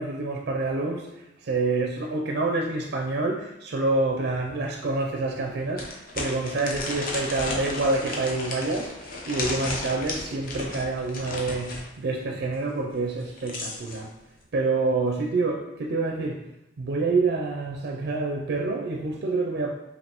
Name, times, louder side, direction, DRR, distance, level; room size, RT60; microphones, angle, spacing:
voice 1, 0.0-14.1 14.5-16.4 16.8-19.7, right 3 dB, 60° right, 1 dB, 0.4 m, -27 dB
sound 1, 4.3-4.4 4.8-4.9 5.8-11.9 13.1-14.0, left 2 dB, 50° left, 0.7 m, -34 dB
5.1 x 2.6 x 2.9 m, 0.89 s
head